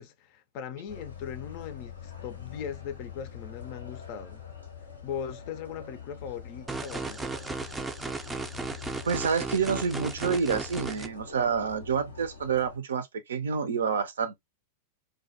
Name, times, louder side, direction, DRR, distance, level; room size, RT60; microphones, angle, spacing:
voice 1, 0.0-4.4 5.0-7.2, left 8 dB, 50° left, 0.4 m, -39 dB
sound 1, 0.9-12.8, left 7 dB, 85° left, 0.7 m, -44 dB
sound 2, 6.7-11.1, right 3 dB, 10° right, 0.4 m, -35 dB
voice 2, 9.1-14.3, right 6 dB, 70° right, 0.4 m, -28 dB
2.2 x 2.1 x 2.6 m
figure-of-eight pair, 90°, 0 cm